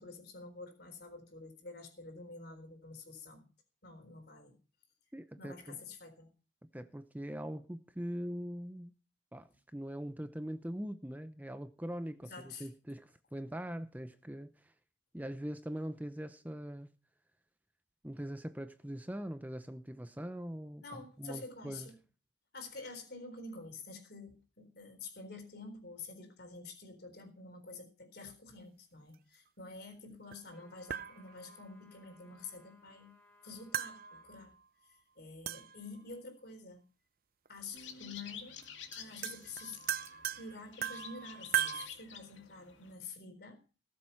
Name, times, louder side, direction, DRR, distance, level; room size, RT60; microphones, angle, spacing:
voice 1, 0.0-3.4 3.8-4.6 5.4-6.3 12.2-12.7 20.8-22.0 22.5-33.1 33.4-34.5 34.8-36.8 37.5-38.6 39.0-39.8 40.4-43.6, left 3 dB, 55° left, 4.0 m, -48 dB
voice 2, 5.1-5.8 6.7-8.9 9.3-14.7 15.1-16.9 18.0-20.8 21.2-21.9, equal, 10° right, 0.7 m, -42 dB
sound 1, 30.3-30.4 30.9-31.7 33.7-34.6 35.5-36.0 37.5-37.6 38.6-38.7 38.9-41.9, right 10 dB, 50° right, 0.6 m, -38 dB
sound 2, 30.5-34.4, left 1 dB, 10° left, 4.0 m, -64 dB
sound 3, 37.7-42.9, left 7 dB, 80° left, 2.3 m, -50 dB
19.0 x 7.8 x 5.6 m
head